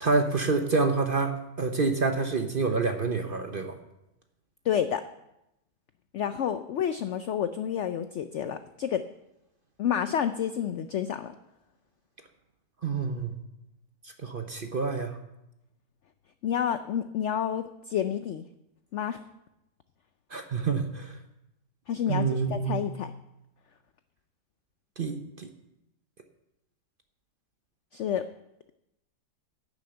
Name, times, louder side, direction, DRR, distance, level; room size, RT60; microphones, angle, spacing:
voice 1, 0.0-3.7 12.8-13.3 14.2-15.2 20.3-21.1 22.1-22.8 25.0-25.5, right 4 dB, 45° right, 6 dB, 0.8 m, -27 dB
voice 2, 4.6-5.0 6.1-9.0 9.8-11.3 16.4-18.4 18.9-19.2 21.9-23.1 27.9-28.2, left 9 dB, 75° left, 10 dB, 0.6 m, -29 dB
11.0 x 7.2 x 7.8 m, 0.87 s
omnidirectional pair, 1.8 m